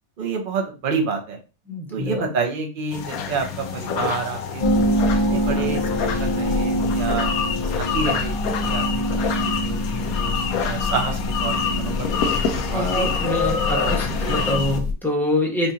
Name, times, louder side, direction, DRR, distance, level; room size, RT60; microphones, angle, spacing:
voice 1, 0.2-1.4 1.9-5.0 5.3-7.3 7.7-8.8 9.1-12.1 12.7-13.1 13.7-14.6, right 5 dB, 45° right, 4 dB, 0.9 m, -29 dB
voice 2, 1.7-2.3 12.7-15.7, left 1 dB, ahead, 0 dB, 0.9 m, -25 dB
sound 1, 2.9-14.8, left 7 dB, 85° left, 1.1 m, -27 dB
sound 2, 4.6-14.9, left 1 dB, 35° left, 0.6 m, -25 dB
5.6 x 2.4 x 2.8 m, 0.32 s
omnidirectional pair, 1.5 m